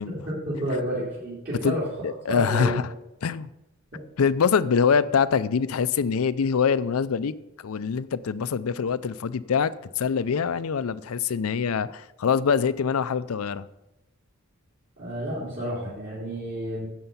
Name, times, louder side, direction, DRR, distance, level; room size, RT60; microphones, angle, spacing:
voice 1, 0.0-1.9 2.2-2.8 3.9-4.0 15.0-16.9, equal, 50° right, -8 dB, 3.4 m, -30 dB
voice 2, 2.0-2.8 3.2-3.5 4.2-7.4 7.6-13.7, left 6 dB, 85° left, 15 dB, 0.5 m, -24 dB
11.5 x 7.8 x 5.5 m, 0.97 s
head